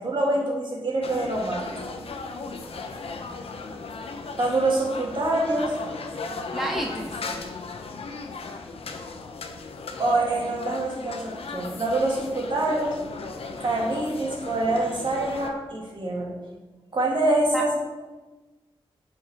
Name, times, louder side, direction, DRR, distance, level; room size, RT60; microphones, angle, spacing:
voice 1, 0.0-1.6 4.4-5.8 10.0-13.0 13.6-16.3 16.9-17.8, right 2 dB, 55° right, -2 dB, 1.8 m, -25 dB
sound 1, 1.0-15.5, left 4 dB, 85° left, 0.7 m, -36 dB
voice 2, 6.5-7.1 17.5-17.8, right 1 dB, ahead, 0 dB, 0.7 m, -29 dB
7.5 x 5.5 x 4.7 m, 1.2 s
wide cardioid pair, 140°, 10 cm